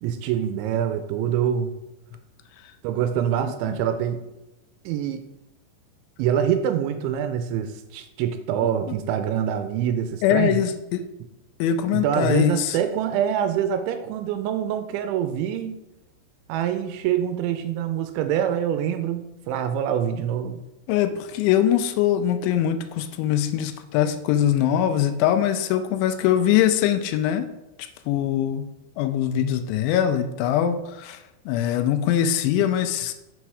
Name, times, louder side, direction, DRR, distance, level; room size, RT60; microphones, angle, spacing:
voice 1, 0.0-1.7 2.8-4.2 4.9-5.2 6.2-10.6 11.9-15.8 16.5-20.6, right 9 dB, 80° right, 9 dB, 2.9 m, -25 dB
voice 2, 10.2-11.0 11.6-12.8 20.9-27.5 27.8-28.7 29.0-33.1, left 10 dB, 80° left, 9 dB, 2.9 m, -22 dB
7.4 x 6.8 x 4.7 m, 0.95 s
omnidirectional pair, 5.5 m